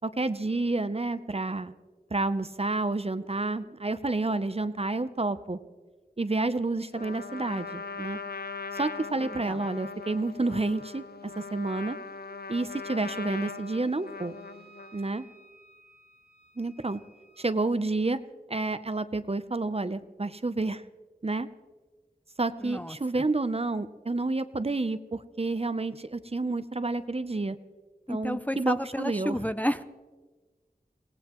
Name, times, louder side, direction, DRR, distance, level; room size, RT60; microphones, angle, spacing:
voice 1, 0.0-1.7 2.1-5.6 6.2-8.2 8.7-12.0 12.5-14.4 14.9-15.3 16.6-17.0 17.4-18.2 18.5-20.8 21.2-21.5 22.4-27.6 28.1-29.4, right 2 dB, 40° right, 12 dB, 0.6 m, -29 dB
Trumpet, 6.9-15.0, left 4 dB, 75° left, 0.6 m, -40 dB
voice 2, 9.2-9.6 22.6-23.2 28.1-29.8, equal, 10° left, 11 dB, 0.5 m, -31 dB
Wind instrument woodwind instrument, 13.5-17.5, right 3 dB, 90° right, 3.2 m, -58 dB
24.5 x 18.0 x 3.0 m, 1.4 s
wide cardioid pair, 50°, 16 cm